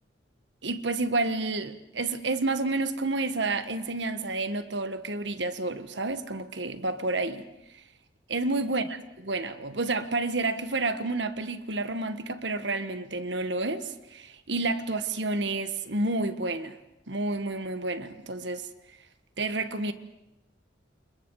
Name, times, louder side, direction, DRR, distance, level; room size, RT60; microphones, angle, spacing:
voice 1, 0.6-7.4 8.3-16.8 17.1-18.7 19.4-19.9, right 2 dB, 70° right, 1.6 m, -30 dB
29.5 x 28.5 x 4.9 m
head